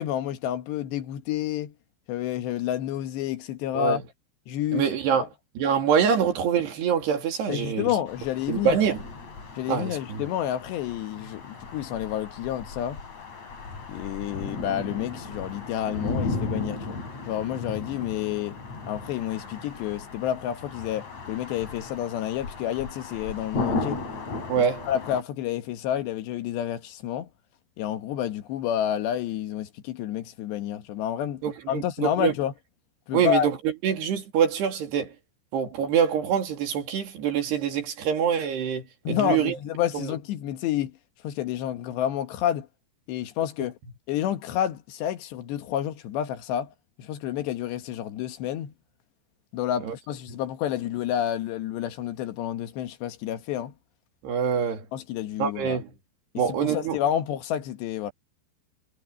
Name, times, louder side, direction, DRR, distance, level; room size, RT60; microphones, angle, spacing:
voice 1, 0.0-1.7 2.1-4.0 4.5-4.9 5.1-5.3 7.5-8.8 9.6-13.0 13.9-17.0 17.3-18.6 18.9-24.0 24.6-27.3 27.8-32.5 33.1-33.5 39.0-40.9 41.2-42.7 43.1-43.8 44.1-46.7 47.0-48.7 49.5-53.7 54.9-55.8 56.5-58.1, left 11 dB, 75° left, 3.5 m, -29 dB
voice 2, 4.7-5.2 5.6-7.9 8.5-9.0 9.7-10.3 24.5-24.9 31.4-32.3 33.1-33.6 33.8-35.1 35.5-39.6 39.9-40.2 49.8-49.9 54.2-54.8 55.4-55.9 56.4-57.0, right 7 dB, 65° right, 4.7 m, -25 dB
sound 1, 8.1-25.2, left 3 dB, 40° left, 6.3 m, -35 dB
omnidirectional pair, 5.2 m